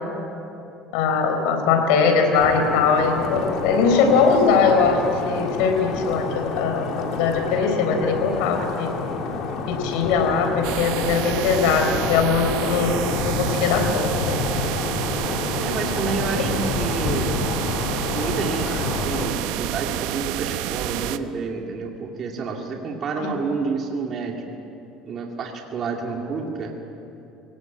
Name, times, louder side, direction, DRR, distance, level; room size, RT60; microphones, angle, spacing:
voice 1, 0.9-6.9 7.1-8.9 9.7-13.0 13.2-14.4 23.2-23.3, left 5 dB, 80° left, 5 dB, 4.1 m, -21 dB
sound 1, 2.3-19.3, left 4 dB, 55° left, 2.7 m, -29 dB
sound 2, 10.6-21.2, right 13 dB, 80° right, 0.8 m, -29 dB
voice 2, 15.6-17.4 18.0-18.7 19.0-24.4 25.1-26.7, right 5 dB, 40° right, 1 dB, 2.3 m, -29 dB
23.5 x 18.0 x 8.9 m, 2.9 s
cardioid pair, 140°, 0 cm